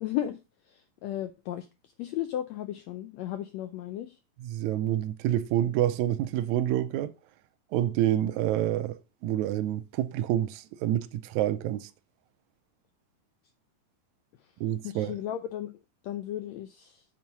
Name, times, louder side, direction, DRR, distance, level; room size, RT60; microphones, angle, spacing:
voice 1, 0.0-0.4 0.7-4.2 14.8-17.0, left 12 dB, 85° left, 1.5 m, -35 dB
voice 2, 4.4-7.1 7.7-11.9 14.6-15.1, right 12 dB, 80° right, 1.7 m, -28 dB
7.4 x 4.1 x 5.8 m
omnidirectional pair, 3.8 m